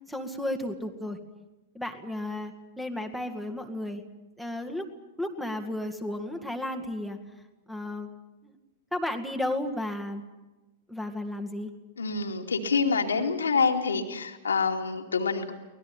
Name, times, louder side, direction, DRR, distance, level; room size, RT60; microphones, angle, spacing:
voice 1, 0.1-1.2 1.7-4.0 4.4-4.9 5.2-7.2 7.7-8.1 8.4-8.6 8.9-10.2 10.9-11.7, left 1 dB, ahead, 6 dB, 2.1 m, -33 dB
voice 2, 12.0-15.5, left 5 dB, 70° left, 2 dB, 2.5 m, -26 dB
24.0 x 19.0 x 8.9 m, 1.1 s
figure-of-eight pair, 100°, 0 cm